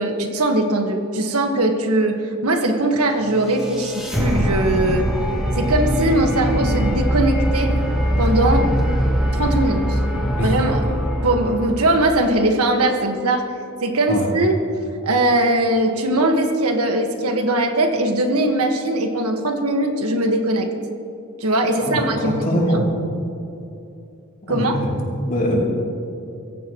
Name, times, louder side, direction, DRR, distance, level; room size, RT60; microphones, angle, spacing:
voice 1, 0.0-5.1 5.5-7.7 8.2-8.7 9.3-10.0 10.4-10.9 11.2-13.5 13.8-14.6 15.0-20.7 21.4-22.8 24.5-24.8, right 1 dB, 85° right, 4 dB, 1.6 m, -20 dB
sound 1, 3.1-12.3, equal, 5° right, 2.4 m, -22 dB
voice 2, 21.8-22.8 24.4-24.9 25.2-25.6, equal, 40° left, -3 dB, 3.3 m, -22 dB
24.0 x 15.5 x 3.1 m, 2.7 s
head